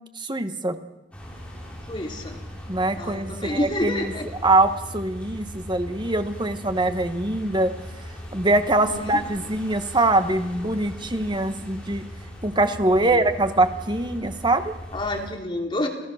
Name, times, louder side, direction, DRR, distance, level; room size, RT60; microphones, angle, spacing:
voice 1, 0.2-0.8 2.7-4.1 4.4-7.7 8.3-12.1 12.4-14.7, right 2 dB, 25° right, 8 dB, 1.4 m, -23 dB
sound 1, 1.1-15.3, equal, 5° left, 6.5 m, -39 dB
voice 2, 1.9-2.4 3.0-4.2 8.8-9.2 12.9-13.3 14.9-15.9, left 1 dB, 25° left, 2 dB, 3.1 m, -29 dB
28.5 x 17.0 x 6.6 m, 1.0 s
head